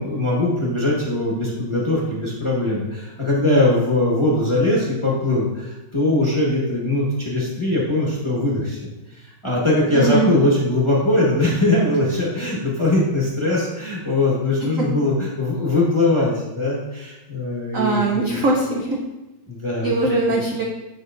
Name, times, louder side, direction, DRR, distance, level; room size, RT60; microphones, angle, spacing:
voice 1, 0.0-8.9 9.2-18.4 19.5-19.9 20.3-20.4, left 2 dB, 20° left, -6 dB, 1.0 m, -21 dB
voice 2, 9.9-10.3 14.6-14.9 17.7-19.0 19.8-20.6, right 3 dB, 65° right, -1 dB, 0.8 m, -21 dB
7.2 x 6.3 x 2.6 m, 1.0 s
omnidirectional pair, 2.3 m